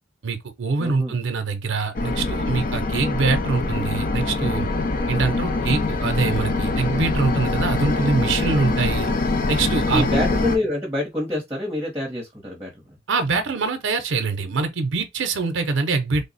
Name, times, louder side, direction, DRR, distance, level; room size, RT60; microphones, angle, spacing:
voice 1, 0.2-4.7 5.1-9.1 9.5-10.1 13.1-16.3, right 4 dB, 70° right, 0.6 m, -24 dB
voice 2, 0.8-1.1 9.9-12.7, left 1 dB, 15° right, 0.8 m, -26 dB
sound 1, 1.9-10.6, left 2 dB, 45° left, 0.5 m, -24 dB
3.3 x 2.0 x 4.0 m
head